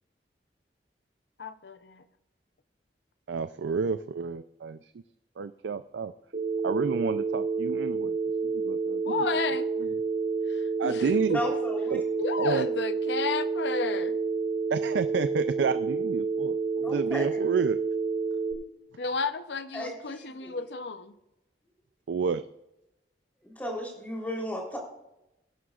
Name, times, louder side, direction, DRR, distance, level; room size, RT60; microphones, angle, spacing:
voice 1, 1.4-2.0 9.1-9.7 10.5-11.2 12.2-14.2 19.0-21.1, left 4 dB, 80° left, 11 dB, 0.7 m, -32 dB
voice 2, 3.3-4.9 5.4-6.1 6.6-8.2 8.4-9.0 9.8-9.9 10.8-11.4 11.9-12.0 12.4-12.7 14.7-17.8 22.1-22.4, right 5 dB, 90° right, 12 dB, 0.4 m, -30 dB
Telephone, 6.3-18.5, right 4 dB, 60° right, 2.4 m, -29 dB
voice 3, 11.3-12.0 16.8-17.4 19.7-20.6 23.4-24.8, left 1 dB, 10° left, -1 dB, 3.4 m, -35 dB
20.5 x 11.0 x 2.4 m, 0.90 s
head